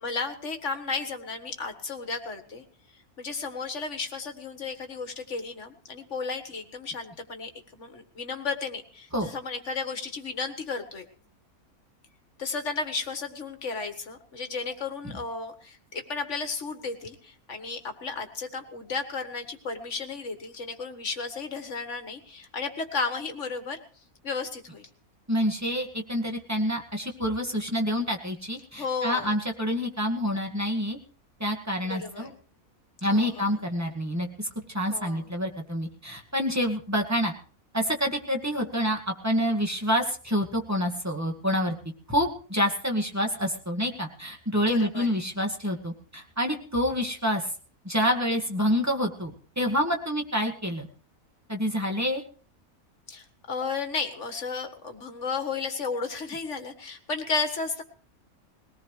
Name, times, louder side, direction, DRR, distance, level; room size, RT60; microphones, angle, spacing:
voice 1, 0.0-2.6 3.2-11.0 12.4-23.8 24.2-24.9 28.7-29.3 31.8-32.3 33.1-33.6 34.9-35.3 44.6-45.2 53.1-57.8, left 4 dB, 50° left, 7 dB, 1.9 m, -33 dB
voice 2, 25.3-31.0 31.4-32.3 33.0-37.3 37.7-41.7 42.1-47.4 47.8-49.3 49.6-50.9 51.5-52.2, equal, 10° right, 1 dB, 1.9 m, -27 dB
21.5 x 18.0 x 3.2 m, 0.41 s
omnidirectional pair, 1.6 m